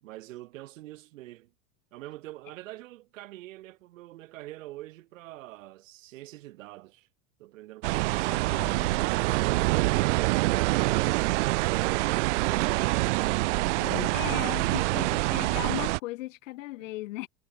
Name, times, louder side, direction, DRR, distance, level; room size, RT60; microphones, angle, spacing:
voice 1, 0.0-1.5 1.9-7.1 7.4-10.1 10.7-13.4 14.2-15.3 16.8-16.9, right 16 dB, 85° right, 3.9 m, -45 dB
sound 1, 7.8-16.0, right 22 dB, 65° right, 0.7 m, -26 dB
voice 2, 8.3-9.1 13.8-17.3, left 18 dB, 80° left, 1.2 m, -37 dB
supercardioid pair, 170°, 38 cm